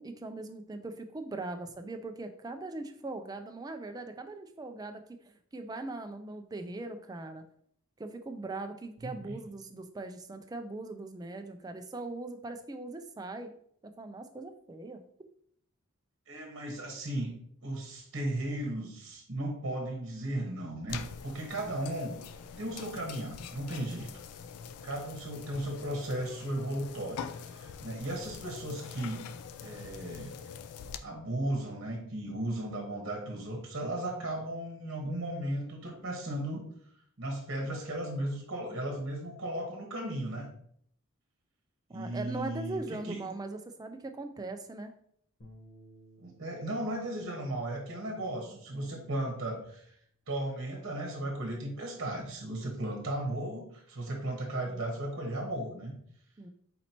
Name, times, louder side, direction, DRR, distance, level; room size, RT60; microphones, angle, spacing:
voice 1, 0.0-7.4 8.0-13.5 13.8-15.0 21.6-21.8 41.9-44.9 48.2-48.6 56.4-56.5, right 2 dB, 15° right, 6 dB, 0.3 m, -40 dB
voice 2, 9.0-9.4 16.3-17.3 17.6-22.2 22.6-24.1 24.8-29.3 29.6-30.3 31.0-36.6 37.2-40.5 41.9-43.2 46.2-49.9 50.3-55.9, right 1 dB, 55° right, 0 dB, 1.1 m, -36 dB
sound 1, 20.9-31.0, left 7 dB, 90° left, 0.4 m, -44 dB
sound 2, 45.4-51.6, equal, 50° left, 0.9 m, -61 dB
4.2 x 2.8 x 4.3 m, 0.67 s
head